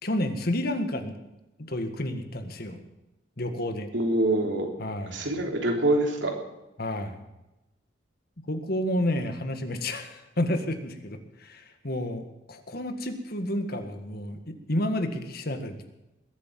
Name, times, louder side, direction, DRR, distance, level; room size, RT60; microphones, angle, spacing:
voice 1, 0.0-1.1 1.6-2.8 3.4-3.9 4.8-5.3 6.8-7.2 8.5-15.9, left 1 dB, 55° left, 7 dB, 1.8 m, -30 dB
voice 2, 3.9-4.7 5.1-6.4, right 1 dB, 75° right, 2 dB, 3.6 m, -25 dB
21.0 x 8.4 x 7.6 m, 0.96 s
head